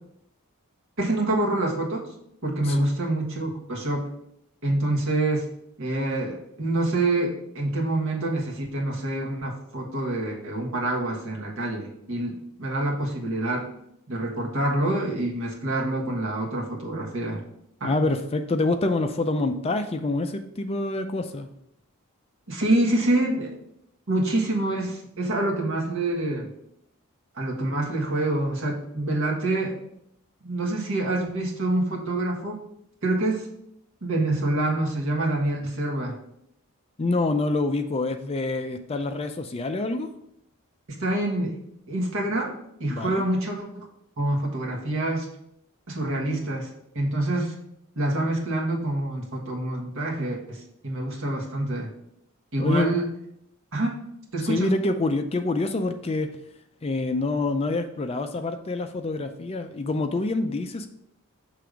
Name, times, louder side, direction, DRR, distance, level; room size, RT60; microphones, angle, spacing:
voice 1, 1.0-2.1 2.4-4.1 4.6-5.5 5.8-13.7 14.1-17.4 17.8-17.9 22.5-23.5 24.1-26.5 27.3-29.7 30.4-32.6 33.0-33.5 34.0-36.2 41.0-41.6 41.9-43.9 44.2-45.3 45.9-46.7 46.9-47.6 47.9-51.9 52.5-53.1 53.7-54.0 54.3-54.7, right 2 dB, 60° right, -1 dB, 1.5 m, -26 dB
voice 2, 17.8-21.5 37.0-40.1 42.9-43.2 52.6-52.9 54.4-56.3 56.8-60.9, left 2 dB, 25° left, 7 dB, 0.4 m, -26 dB
6.6 x 3.4 x 4.9 m, 0.74 s
head